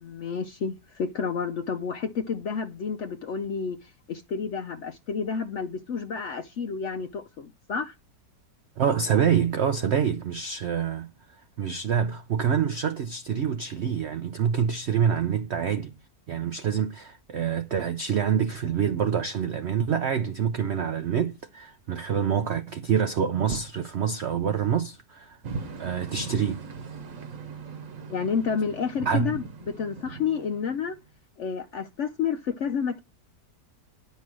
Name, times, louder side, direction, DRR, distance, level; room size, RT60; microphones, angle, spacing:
voice 1, 0.0-8.0 28.1-31.0 31.4-33.0, left 6 dB, 65° left, 0.7 m, -30 dB
voice 2, 8.8-11.1 11.6-15.9 16.3-25.4 25.8-26.6 29.0-29.4, right 8 dB, 70° right, 0.6 m, -26 dB
sound 1, 25.4-31.1, right 4 dB, 55° right, 1.4 m, -39 dB
10.5 x 5.3 x 6.2 m
omnidirectional pair, 1.9 m